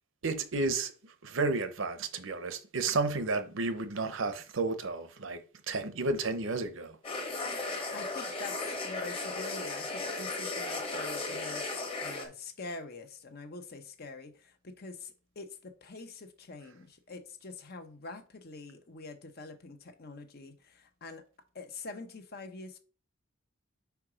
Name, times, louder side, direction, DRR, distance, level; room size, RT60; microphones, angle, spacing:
voice 1, 0.2-5.4 5.7-7.0, right 3 dB, 70° right, 0.8 m, -32 dB
sound 1, 7.0-12.2, left 3 dB, 30° left, 1.3 m, -36 dB
voice 2, 7.9-21.2 21.5-22.8, left 3 dB, 50° left, 0.9 m, -45 dB
4.6 x 4.6 x 4.9 m
head